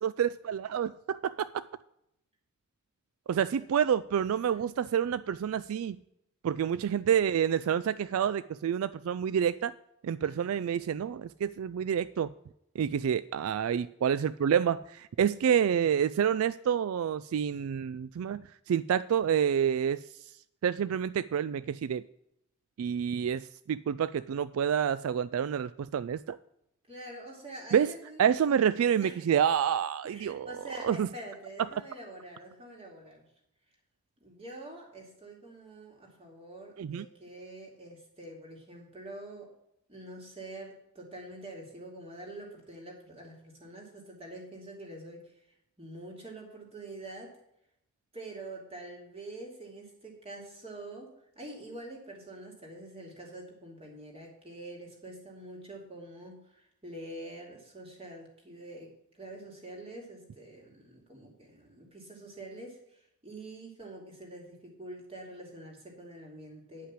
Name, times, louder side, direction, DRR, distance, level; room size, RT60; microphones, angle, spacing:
voice 1, 0.0-1.6 3.3-6.0 6.4-9.7 10.0-12.3 12.8-20.0 20.6-22.0 22.8-26.4 27.7-27.9 28.2-30.5 30.8-31.1 31.7-31.8 36.8-37.1, right 8 dB, 75° right, 16 dB, 0.3 m, -28 dB
voice 2, 3.3-3.7 4.5-4.7 10.2-10.7 26.9-28.3 29.0-29.1 30.0-33.3 34.2-39.5 39.9-45.2 45.8-47.3 48.1-51.1 51.4-58.9 59.2-62.8 63.2-66.9, right 1 dB, 25° right, -1 dB, 2.6 m, -46 dB
9.9 x 5.7 x 7.4 m, 0.79 s
head